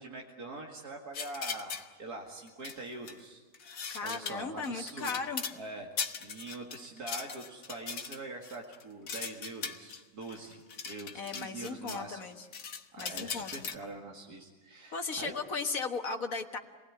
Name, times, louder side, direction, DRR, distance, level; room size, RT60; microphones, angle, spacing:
voice 1, 0.0-3.4 4.0-5.2 5.5-5.9 6.2-12.3 12.9-15.3, right 2 dB, 90° right, 0 dB, 2.6 m, -44 dB
sound 1, 1.1-1.9 2.5-3.2 3.5-5.6 6.0-12.0 12.3-13.8, left 6 dB, 80° left, 1.7 m, -39 dB
voice 2, 3.9-5.4 11.1-12.5 13.0-13.7 14.9-16.6, left 4 dB, 65° left, 4 dB, 1.9 m, -36 dB
29.0 x 20.0 x 9.5 m, 1.3 s
omnidirectional pair, 1.6 m